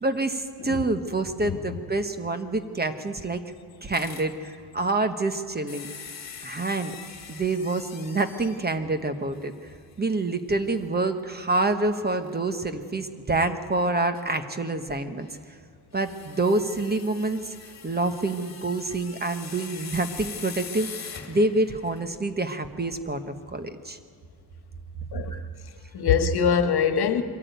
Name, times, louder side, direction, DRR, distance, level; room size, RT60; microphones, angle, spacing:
voice 1, 0.0-3.4 3.8-5.9 6.4-6.9 7.3-9.5 10.0-15.3 15.9-17.5 17.8-24.0 25.3-25.4, right 2 dB, 20° right, 1.1 m, -27 dB
sound 1, 3.9-4.3 5.7-8.7 9.4-9.5 9.9-10.0 12.3-12.4 14.1-14.2 15.9-22.1, left 6 dB, 40° left, 2.0 m, -42 dB
voice 2, 25.9-27.2, left 7 dB, 60° left, 1.5 m, -23 dB
23.0 x 15.0 x 9.2 m
wide cardioid pair, 155°, 43 cm